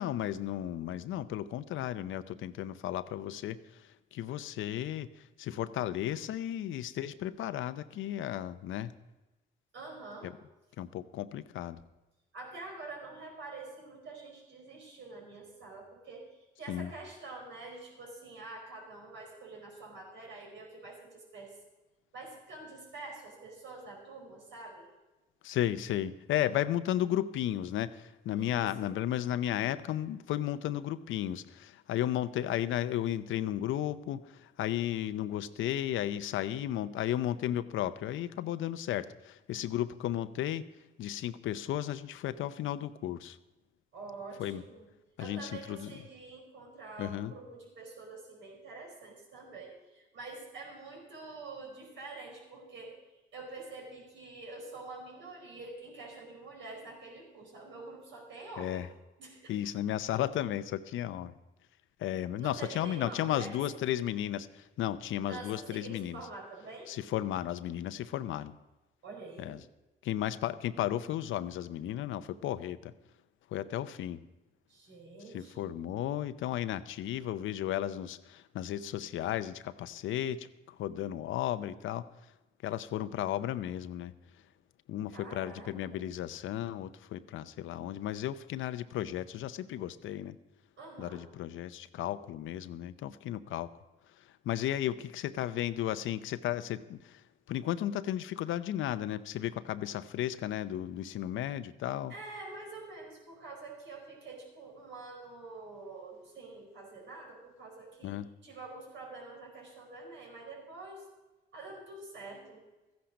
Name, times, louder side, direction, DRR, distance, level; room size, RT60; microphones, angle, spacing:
voice 1, 0.0-5.1 5.4-8.9 10.2-10.3 10.8-11.8 16.7-16.9 25.4-40.6 41.0-43.4 44.4-44.6 45.2-46.0 47.0-47.3 58.6-58.9 59.5-61.3 62.0-66.2 66.9-68.6 69.4-69.6 70.0-72.9 73.5-74.2 75.3-82.1 82.6-84.1 84.9-90.3 91.0-93.7 94.4-97.2 97.5-102.1 108.0-108.3, left 12 dB, 80° left, 13 dB, 0.6 m, -34 dB
voice 2, 9.7-10.3 12.3-21.5 22.1-24.9 28.3-28.9 43.9-44.9 45.2-53.0 53.3-58.8 59.2-59.6 62.4-63.8 65.3-66.9 69.0-69.5 74.7-75.7 85.1-86.0 90.8-91.2 102.1-108.2 108.4-111.1 111.5-112.6, right 3 dB, 70° right, -1 dB, 5.0 m, -46 dB
14.0 x 10.5 x 5.1 m, 1.1 s
cardioid pair, 90°, 20 cm